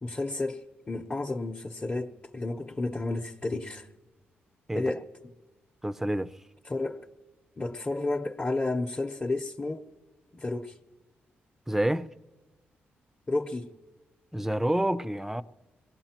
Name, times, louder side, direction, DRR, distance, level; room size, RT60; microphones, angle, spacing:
voice 1, 0.0-3.9 4.7-5.1 6.6-7.0 7.6-9.8 10.3-10.8 13.3-13.7, left 2 dB, 30° left, 0.9 m, -31 dB
voice 2, 5.8-6.3 11.7-12.1 14.3-15.4, right 1 dB, 5° right, 0.6 m, -28 dB
23.0 x 18.0 x 2.9 m
supercardioid pair, 50°, 4 cm